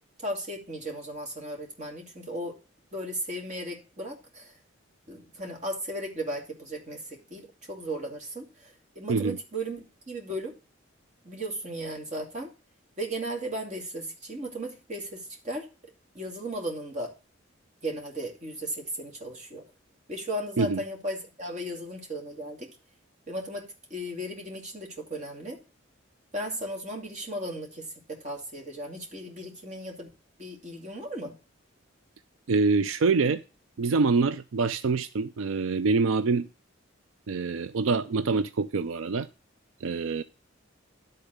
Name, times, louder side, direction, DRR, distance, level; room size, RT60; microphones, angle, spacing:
voice 1, 0.2-2.5 2.9-4.5 5.1-10.5 11.2-12.5 13.0-15.6 16.1-17.1 17.8-19.6 20.1-22.7 23.3-25.6 26.3-30.1 30.4-31.3, right 1 dB, 35° right, 2.5 m, -36 dB
voice 2, 32.5-33.4 33.8-36.5 37.3-39.3 39.8-40.2, right 4 dB, 80° right, 0.4 m, -25 dB
12.0 x 4.0 x 6.5 m
head